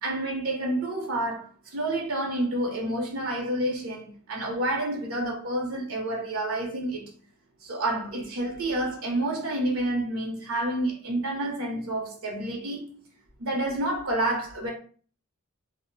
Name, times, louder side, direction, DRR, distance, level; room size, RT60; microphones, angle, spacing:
voice 1, 0.0-7.1 7.6-12.8 13.4-14.7, right 1 dB, 80° right, 0.7 m, -29 dB
2.1 x 2.0 x 3.7 m
head